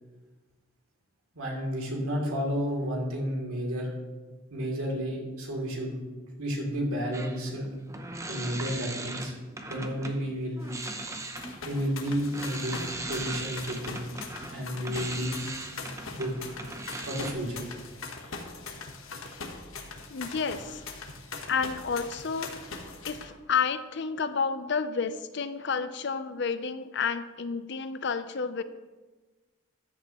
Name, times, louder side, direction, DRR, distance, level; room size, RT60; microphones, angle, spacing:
voice 1, 1.3-3.9 4.5-6.0 6.4-7.7 8.3-10.6 11.6-12.8 13.1-14.1 14.5-15.5 16.1-16.3 17.0-17.6, equal, 90° right, -1 dB, 2.9 m, -31 dB
sound 1, 7.1-10.2 10.6-17.3, right 2 dB, 15° right, 0.7 m, -39 dB
sound 2, 10.6-23.3, left 4 dB, 80° left, 1.2 m, -42 dB
voice 2, 20.1-20.8 21.5-22.5 23.0-28.6, left 5 dB, 55° left, 12 dB, 0.6 m, -30 dB
13.5 x 9.6 x 3.0 m, 1.2 s
head